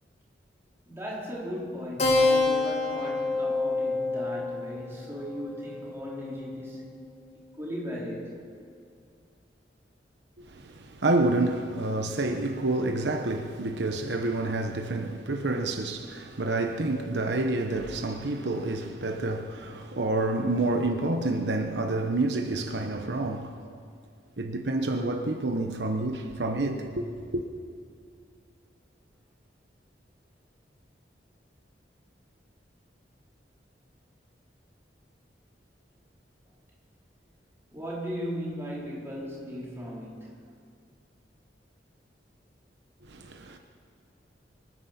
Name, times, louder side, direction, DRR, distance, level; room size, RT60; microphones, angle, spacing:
voice 1, 0.9-6.8 7.5-8.3 37.7-40.4, equal, 15° right, 4.1 m, -37 dB
Keyboard (musical), 2.0-7.0, left 3 dB, 35° left, 1.8 m, -28 dB
voice 2, 10.4-23.5 24.4-27.4 43.1-43.6, right 2 dB, 75° right, 1.0 m, -28 dB
25.0 x 9.7 x 5.9 m
head